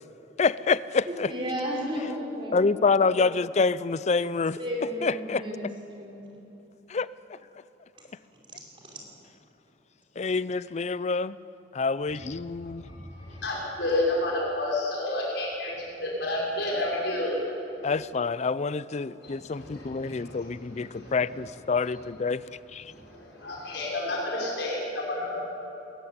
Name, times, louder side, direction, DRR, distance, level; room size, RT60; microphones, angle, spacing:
voice 1, 0.4-1.3 2.5-4.6 5.0-5.7 6.9-7.4 10.2-11.4 11.7-12.8 17.8-22.4 22.7-22.9, left 4 dB, 40° left, 0.5 m, -27 dB
voice 2, 1.1-2.6 4.6-5.7 6.0-6.2 8.7-9.0, equal, 30° right, 4.9 m, -33 dB
voice 3, 12.6-17.4 19.2-20.5 20.7-21.1 22.8-25.4, left 1 dB, 75° left, 5.5 m, -31 dB
21.5 x 14.5 x 9.4 m
head